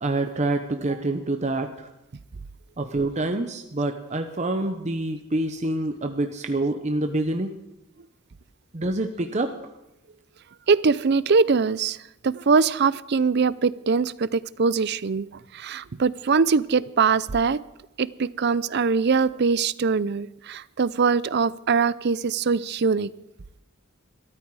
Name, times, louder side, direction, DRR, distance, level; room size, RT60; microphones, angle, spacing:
voice 1, 0.0-1.9 2.8-7.5 8.7-9.5, right 2 dB, 35° right, 6 dB, 0.9 m, -26 dB
voice 2, 10.7-12.0 12.2-15.3 15.5-17.6 18.0-23.1, right 5 dB, 55° right, 18 dB, 0.5 m, -22 dB
22.0 x 13.5 x 4.8 m, 0.90 s
head